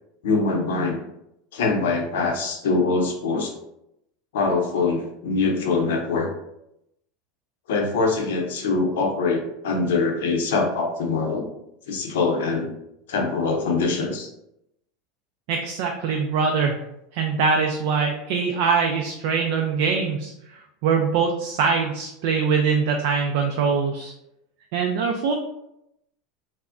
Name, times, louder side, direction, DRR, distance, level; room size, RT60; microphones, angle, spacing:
voice 1, 0.2-1.1 1.5-3.5 4.3-6.3 7.7-11.5 11.9-12.7 13.1-14.3, left 3 dB, 90° left, 2 dB, 0.6 m, -23 dB
voice 2, 15.5-16.7 17.1-20.3 20.8-24.1 24.7-25.3, right 5 dB, 65° right, 3 dB, 0.3 m, -23 dB
3.3 x 2.1 x 2.4 m, 0.81 s
supercardioid pair, 145°, 0 cm